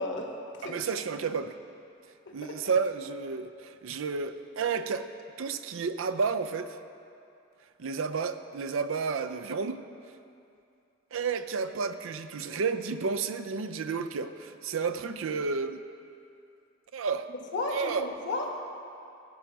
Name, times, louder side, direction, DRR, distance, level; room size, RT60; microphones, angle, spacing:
voice 1, 0.0-0.8 2.3-2.5 17.5-18.6, left 2 dB, 60° left, 2 dB, 1.2 m, -34 dB
voice 2, 0.6-1.5 2.3-5.1 5.4-6.8 7.8-9.8 11.1-15.8 16.9-17.3 17.7-18.1, right 5 dB, 75° right, 10 dB, 0.5 m, -31 dB
15.5 x 5.2 x 6.0 m, 2.5 s
head